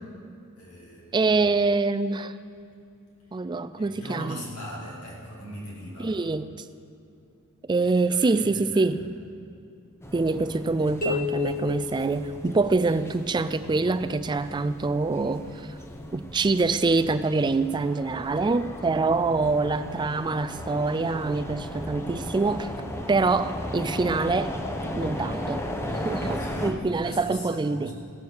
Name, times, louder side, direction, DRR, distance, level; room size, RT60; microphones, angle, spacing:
voice 1, 0.6-1.3 3.3-3.4 3.8-6.1 7.8-9.1 26.3-27.9, equal, 80° left, -5 dB, 3.8 m, -40 dB
voice 2, 1.1-2.3 3.3-4.4 6.0-6.5 7.7-9.0 10.1-15.7 16.1-22.7 23.1-24.5 25.0-27.9, right 3 dB, 20° right, 13 dB, 0.3 m, -25 dB
sound 1, 10.0-26.7, equal, 10° left, 0.7 m, -36 dB
sound 2, 11.0-13.0, left 5 dB, 40° left, 2.2 m, -32 dB
16.5 x 7.0 x 6.4 m, 2.5 s
head